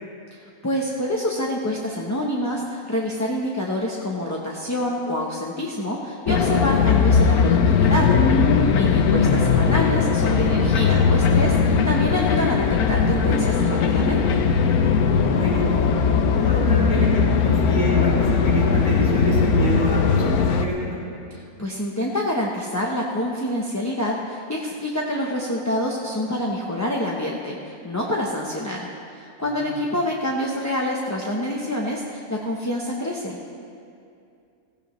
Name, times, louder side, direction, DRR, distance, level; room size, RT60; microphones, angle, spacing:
voice 1, 0.3-8.2 8.7-14.4 21.3-33.4, left 1 dB, 15° left, -3 dB, 0.7 m, -27 dB
sound 1, 6.3-20.7, left 5 dB, 80° left, 1.3 m, -19 dB
voice 2, 15.2-15.9 16.3-21.0 29.6-29.8, right 1 dB, 30° left, -8 dB, 4.1 m, -28 dB
16.5 x 15.5 x 3.2 m, 2.5 s
omnidirectional pair, 1.5 m